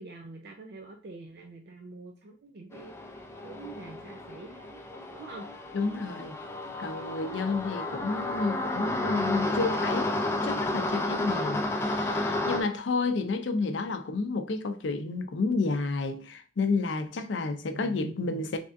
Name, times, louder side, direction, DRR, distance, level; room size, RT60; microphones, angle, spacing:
voice 1, 0.0-2.9 3.4-4.8 5.1-5.5 17.1-18.6, right 3 dB, 60° right, 0.5 m, -45 dB
sound 1, 2.7-12.6, left 2 dB, 15° left, 0.4 m, -31 dB
voice 2, 5.7-6.4 6.8-10.1 10.4-18.6, left 3 dB, 80° left, 0.5 m, -30 dB
3.5 x 3.3 x 2.5 m
head